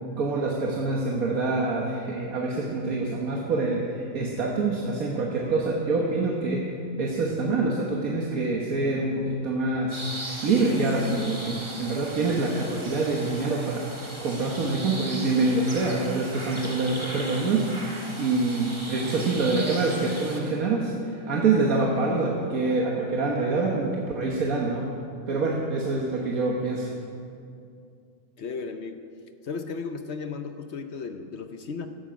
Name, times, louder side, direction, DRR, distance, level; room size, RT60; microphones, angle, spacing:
voice 1, 0.2-13.8 14.2-24.9 25.3-26.9, right 3 dB, 80° right, -2 dB, 1.7 m, -26 dB
sound 1, 9.9-20.4, right 1 dB, 20° right, 1.8 m, -38 dB
voice 2, 28.4-29.0 29.4-31.9, left 5 dB, 55° left, 7 dB, 0.9 m, -35 dB
16.0 x 12.0 x 5.2 m, 2.5 s
omnidirectional pair, 1.5 m